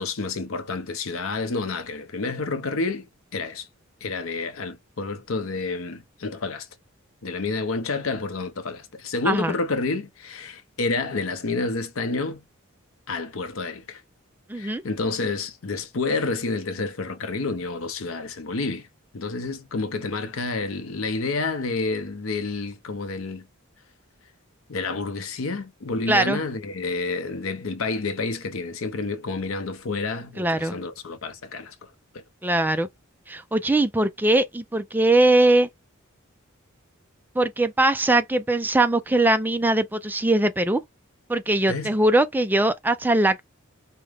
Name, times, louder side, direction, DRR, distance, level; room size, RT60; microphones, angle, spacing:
voice 1, 0.0-3.7 4.0-6.7 7.2-12.4 13.1-14.0 14.5-18.9 19.1-23.5 24.7-31.9 41.7-41.9, left 3 dB, 75° left, 0.7 m, -29 dB
voice 2, 14.5-14.8 26.1-26.4 30.4-30.8 32.4-32.9 33.3-35.7 37.4-40.8 41.3-43.4, right 2 dB, 10° right, 0.4 m, -21 dB
4.9 x 2.1 x 3.4 m
head